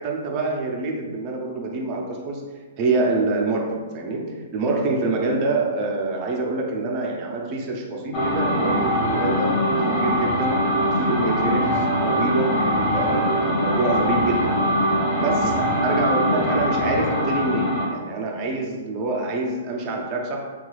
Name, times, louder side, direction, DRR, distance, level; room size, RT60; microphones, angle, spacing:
voice 1, 0.0-2.4 2.8-10.6 11.0-14.6 15.2-20.5, right 3 dB, 30° right, 0 dB, 0.6 m, -26 dB
sound 1, 8.1-17.9, equal, 30° left, 1.0 m, -22 dB
3.2 x 2.3 x 3.1 m, 1.4 s
hypercardioid pair, 150°, 0 cm